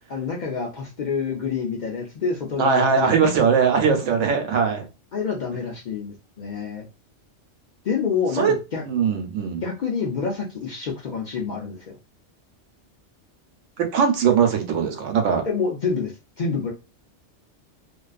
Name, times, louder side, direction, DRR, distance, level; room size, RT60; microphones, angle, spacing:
voice 1, 0.1-3.1 5.1-6.9 7.8-8.8 9.6-12.0 15.5-16.1 16.4-16.7, left 5 dB, 60° left, -1 dB, 0.5 m, -27 dB
voice 2, 2.6-4.9 8.3-8.5 8.9-9.6 13.8-15.4, right 6 dB, 90° right, 4 dB, 1.0 m, -20 dB
2.5 x 2.3 x 2.3 m, 0.29 s
omnidirectional pair, 1.2 m